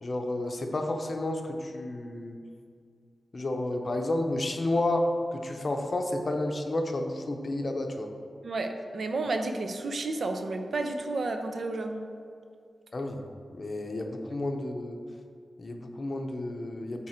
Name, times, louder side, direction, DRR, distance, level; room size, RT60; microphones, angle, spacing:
voice 1, 0.0-2.4 3.3-8.1 12.9-13.2 13.5-15.0 15.6-17.1, left 1 dB, 40° left, 4 dB, 0.6 m, -31 dB
voice 2, 8.4-12.1, right 2 dB, 65° right, 5 dB, 0.5 m, -31 dB
9.7 x 3.5 x 4.4 m, 2.3 s
wide cardioid pair, 125°, 0 cm